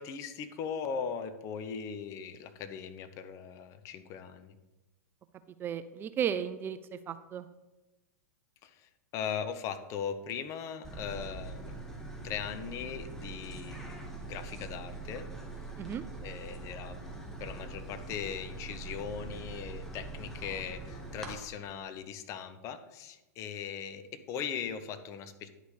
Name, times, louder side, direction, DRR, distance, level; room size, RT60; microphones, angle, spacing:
voice 1, 0.0-4.6 8.6-11.8 12.2-15.3 16.2-17.0 17.4-25.5, left 7 dB, 35° left, 11 dB, 0.8 m, -39 dB
voice 2, 5.6-7.5 15.8-16.0, right 8 dB, 25° right, 12 dB, 0.4 m, -34 dB
sound 1, 10.8-21.3, right 3 dB, 5° left, 1.6 m, -43 dB
10.0 x 5.1 x 5.0 m, 1.0 s
hypercardioid pair, 105°, 9 cm